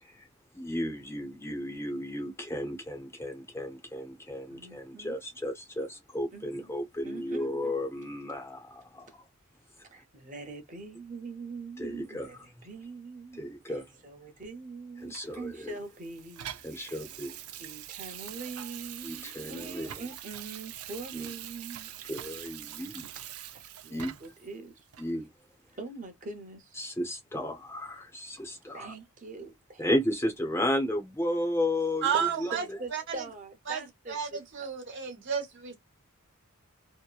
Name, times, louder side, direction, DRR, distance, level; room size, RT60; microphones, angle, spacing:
voice 1, 0.5-9.2 11.8-12.3 13.4-13.9 15.0-15.7 16.6-17.4 19.0-20.0 21.1-21.2 22.1-23.0 23.9-24.2 25.0-25.3 26.8-28.9 29.8-32.1 32.4-32.5, left 1 dB, 10° left, 0.6 m, -33 dB
voice 2, 4.5-5.2 6.3-6.7 7.0-7.7 9.9-17.0 17.6-21.9 22.8-22.9 23.1-23.2 23.5-24.8 25.8-26.8 28.7-29.8 32.1-34.4, right 3 dB, 35° right, 0.9 m, -43 dB
Water tap faucet / Sink (filling or washing), 15.1-24.4 24.9-25.1, right 11 dB, 80° right, 0.4 m, -44 dB
voice 3, 32.0-32.6 32.9-33.2 33.7-35.8, right 7 dB, 55° right, 1.1 m, -32 dB
2.8 x 2.1 x 2.3 m
head